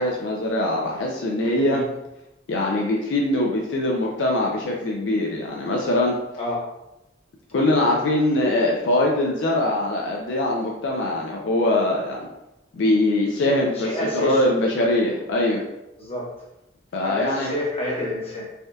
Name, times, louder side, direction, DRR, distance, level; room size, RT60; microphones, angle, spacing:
voice 1, 0.0-1.8 2.5-6.2 7.5-12.3 12.7-15.6 16.9-17.5, left 1 dB, 75° left, -1 dB, 0.4 m, -22 dB
voice 2, 1.4-1.9 6.3-6.7 13.4-14.5 16.0-16.3 17.0-18.5, left 1 dB, 35° left, -6 dB, 1.0 m, -29 dB
3.4 x 2.2 x 2.6 m, 0.92 s
head